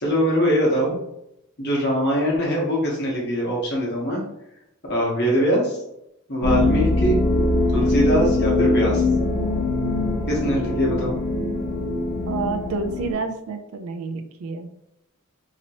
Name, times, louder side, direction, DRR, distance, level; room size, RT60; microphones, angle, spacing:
voice 1, 0.0-1.0 1.6-4.2 4.9-5.8 6.3-7.2 7.7-9.1 10.3-11.2, equal, 50° left, -3 dB, 1.1 m, -22 dB
sound 1, 6.4-13.1, left 2 dB, 35° left, 0.8 m, -22 dB
voice 2, 12.3-14.7, right 4 dB, 80° right, 7 dB, 0.4 m, -29 dB
2.9 x 2.8 x 2.8 m, 0.82 s
head